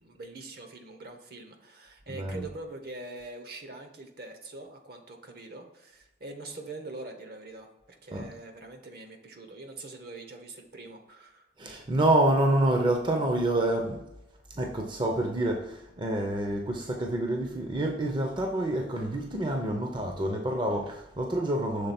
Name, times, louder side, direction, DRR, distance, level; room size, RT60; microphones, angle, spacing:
voice 1, 0.0-11.4, right 2 dB, 60° right, 5 dB, 1.0 m, -44 dB
voice 2, 2.1-2.4 8.1-8.3 11.6-14.0 14.6-21.9, right 1 dB, 25° right, 2 dB, 0.6 m, -27 dB
6.6 x 3.8 x 4.2 m, 0.90 s
head